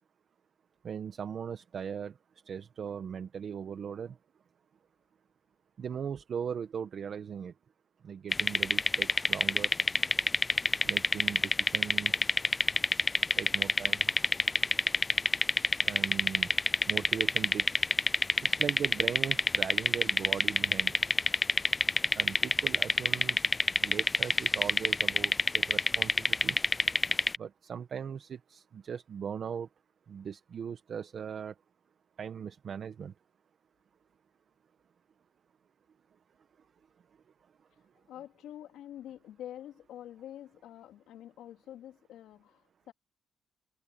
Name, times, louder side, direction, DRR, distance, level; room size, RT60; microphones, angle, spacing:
voice 1, 0.8-2.1 2.4-4.2 5.8-7.5 8.0-9.7 10.8-12.3 13.4-14.1 15.8-16.5 16.9-17.9 18.4-21.0 22.1-23.4 23.8-26.6 27.4-29.7 30.1-31.5 32.2-33.1, right 7 dB, 55° right, 1.6 m, -39 dB
sound 1, 8.3-27.4, left 3 dB, 20° left, 0.4 m, -27 dB
voice 2, 38.1-42.9, left 11 dB, 80° left, 3.5 m, -47 dB
cardioid pair, 90°, 0 cm